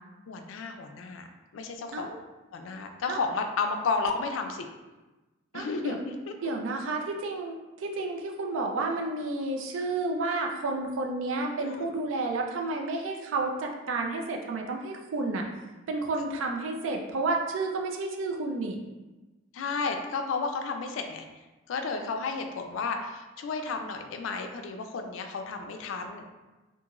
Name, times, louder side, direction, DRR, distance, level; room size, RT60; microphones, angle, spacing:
voice 1, 0.3-1.3 1.5-2.1 2.5-4.7 5.5-6.3 11.6-11.9 19.5-21.2 21.7-26.2, left 4 dB, 80° left, 5 dB, 0.3 m, -32 dB
voice 2, 5.5-6.0 6.4-15.5 15.9-18.8, right 3 dB, 85° right, 2 dB, 0.4 m, -31 dB
2.5 x 2.4 x 2.9 m, 1.1 s
head